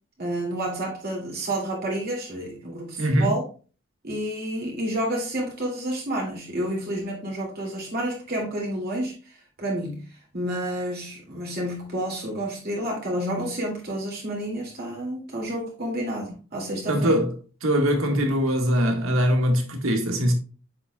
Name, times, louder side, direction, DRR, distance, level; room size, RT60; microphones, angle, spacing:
voice 1, 0.2-3.4 4.0-9.3 9.6-10.0 10.3-17.2, right 1 dB, 50° right, 2.7 m, -30 dB
voice 2, 3.0-3.4 16.9-17.3 17.6-20.3, equal, 85° right, 1.7 m, -22 dB
7.5 x 6.5 x 2.3 m
head